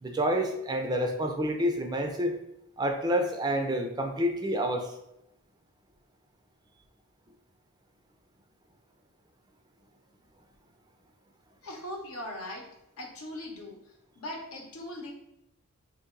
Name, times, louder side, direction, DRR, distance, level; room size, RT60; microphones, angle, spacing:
voice 1, 0.0-2.3 2.8-4.9, equal, 20° right, 4 dB, 0.3 m, -28 dB
voice 2, 11.6-12.7 13.0-13.8 14.2-15.1, left 1 dB, 75° left, 1 dB, 0.8 m, -39 dB
2.9 x 2.8 x 3.7 m, 0.83 s
head